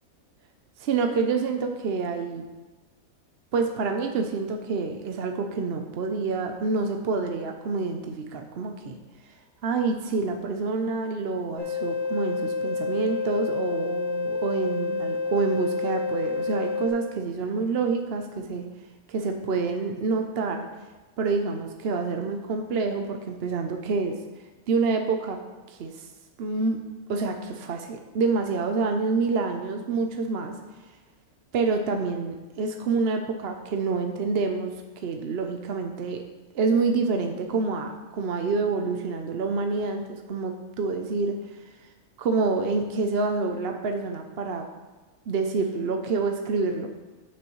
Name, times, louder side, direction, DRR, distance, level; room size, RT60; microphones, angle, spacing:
voice 1, 0.8-2.4 3.5-9.0 9.6-18.6 19.1-20.7 21.2-24.2 24.7-25.4 25.7-26.1 26.4-26.8 27.1-30.5 31.5-36.2 36.5-41.3 42.2-44.7 45.3-46.9, right 4 dB, 55° right, 5 dB, 0.8 m, -27 dB
sound 1, 11.6-16.9, left 4 dB, 65° left, 1.7 m, -29 dB
14.5 x 6.2 x 3.1 m, 1.2 s
omnidirectional pair, 1.5 m